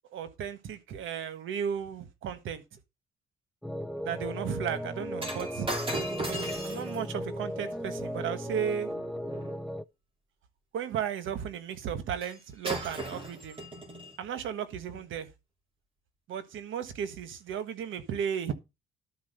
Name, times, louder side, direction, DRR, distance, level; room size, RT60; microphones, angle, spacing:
voice 1, 0.1-2.6 4.0-5.7 6.6-8.9 10.7-13.6 14.2-15.3 16.3-18.5, right 8 dB, 80° right, 1.4 m, -34 dB
sound 1, 3.6-9.8, equal, ahead, 0.6 m, -36 dB
Shatter, 5.2-9.6 12.2-12.4 12.6-14.2 14.9-15.0, right 2 dB, 25° right, 3.2 m, -38 dB
12.0 x 4.4 x 6.6 m
cardioid pair, 90°, 20 cm